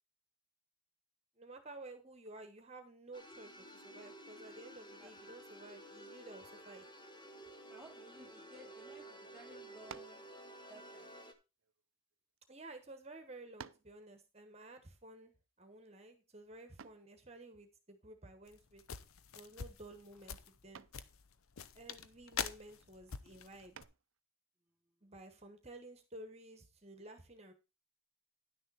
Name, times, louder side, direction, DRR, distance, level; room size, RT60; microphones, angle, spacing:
voice 1, 1.4-6.8 12.5-15.3 15.6-18.8 19.3-20.8 21.7-23.8 25.0-27.5, right 2 dB, 30° right, 1.3 m, -53 dB
sound 1, 3.1-11.3, right 1 dB, 20° left, 1.1 m, -53 dB
voice 2, 7.7-10.3 10.7-11.2 24.6-25.4, equal, 5° right, 1.4 m, -58 dB
sound 2, 9.9-10.3 11.2-12.4 13.0-13.1 13.6-14.0 16.8-17.1 19.0-19.4 19.8-20.1 20.7-21.1 23.7-24.2, right 7 dB, 70° right, 0.5 m, -53 dB
sound 3, 18.5-23.8, left 7 dB, 85° left, 0.8 m, -45 dB
10.5 x 6.6 x 4.2 m
head